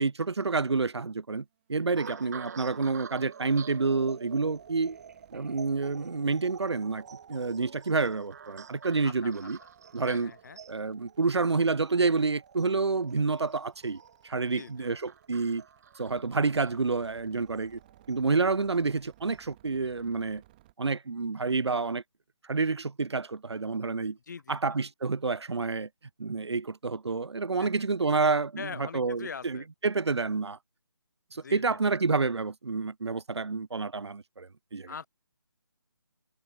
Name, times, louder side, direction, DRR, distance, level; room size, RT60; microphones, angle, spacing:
voice 1, 0.0-1.4 1.7-5.0 5.3-7.0 7.3-9.6 9.9-10.3 10.7-15.6 16.0-17.8 18.1-20.4 20.8-22.0 22.5-24.2 24.5-25.9 26.2-30.6 31.3-34.9, right 4 dB, 85° right, 0.4 m, -29 dB
sound 1, 1.5-20.7, right 16 dB, 20° right, 5.0 m, -63 dB
sound 2, 2.0-18.4 19.1-19.4, right 7 dB, 40° right, 1.2 m, -48 dB
voice 2, 9.0-9.5 10.0-10.6 14.5-14.9 24.3-24.6 27.6-27.7 28.6-29.7 31.4-31.8 34.9-35.1, left 6 dB, 45° left, 1.1 m, -42 dB
figure-of-eight pair, 150°, 14 cm